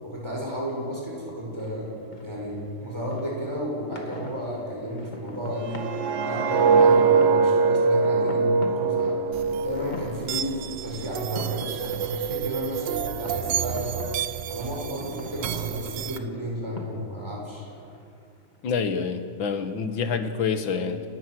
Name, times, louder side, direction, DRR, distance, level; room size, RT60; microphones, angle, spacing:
voice 1, 0.0-5.8 6.2-9.2 9.6-14.1 14.5-17.7, equal, 15° right, -3 dB, 6.0 m, -32 dB
sound 1, 1.1-20.4, left 1 dB, 25° left, 2.1 m, -44 dB
sound 2, 5.6-10.7 11.0-11.3, right 4 dB, 55° right, 0.8 m, -22 dB
sound 3, 9.3-16.2, right 10 dB, 70° right, 1.3 m, -31 dB
voice 2, 18.6-21.1, left 5 dB, 80° left, 8 dB, 2.1 m, -27 dB
29.5 x 16.0 x 6.2 m, 2.4 s
omnidirectional pair, 2.1 m